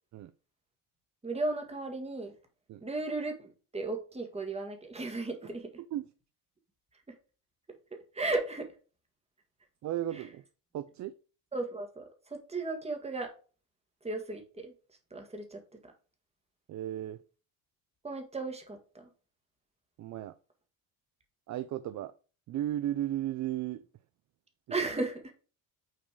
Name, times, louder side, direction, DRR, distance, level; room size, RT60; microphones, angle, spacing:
voice 1, 1.2-2.3 2.8-5.7 7.1-7.2 7.9-8.7 10.1-10.2 11.5-13.3 14.0-14.7 15.1-15.6 18.0-19.1 24.7-25.3, right 2 dB, 15° right, 4 dB, 1.8 m, -35 dB
voice 2, 9.8-10.4 10.7-11.1 16.7-17.2 20.0-20.3 21.5-22.1 22.5-23.9, right 12 dB, 45° right, 13 dB, 0.5 m, -35 dB
6.2 x 4.3 x 4.8 m, 0.37 s
cardioid pair, 115°, 40 cm